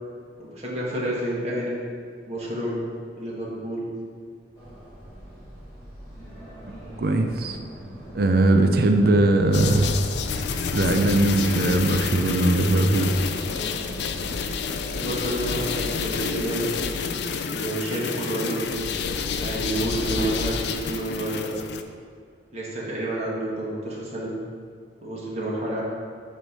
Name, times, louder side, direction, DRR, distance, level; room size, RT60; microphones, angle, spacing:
voice 1, 0.4-1.8 2.3-2.8 3.2-3.9 14.9-16.7 17.5-18.7 19.4-21.7 22.5-24.3 25.0-25.8, right 1 dB, 35° right, -6 dB, 1.6 m, -29 dB
sound 1, 4.5-15.8, right 1 dB, 15° left, 1.8 m, -42 dB
voice 2, 7.0-7.6 8.1-9.9 10.7-13.1, right 2 dB, 55° right, 4 dB, 0.5 m, -20 dB
sound 2, 9.5-21.8, left 5 dB, 60° left, 0.4 m, -29 dB
8.1 x 3.2 x 5.5 m, 2.1 s
head